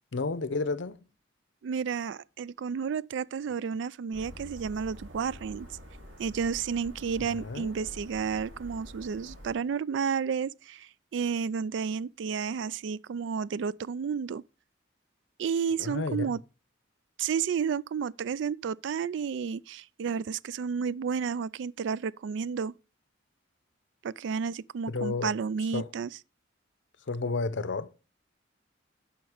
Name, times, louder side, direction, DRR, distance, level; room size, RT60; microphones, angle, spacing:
voice 1, 0.1-1.0 7.2-7.7 15.8-16.4 24.9-25.4 25.7-25.9 27.1-27.9, left 3 dB, 65° left, 0.7 m, -31 dB
voice 2, 1.6-5.7 6.2-14.4 15.4-16.4 17.2-22.7 24.0-26.1, right 6 dB, 65° right, 0.3 m, -31 dB
sound 1, 4.1-9.5, equal, 80° right, 2.9 m, -47 dB
9.4 x 5.9 x 4.9 m
head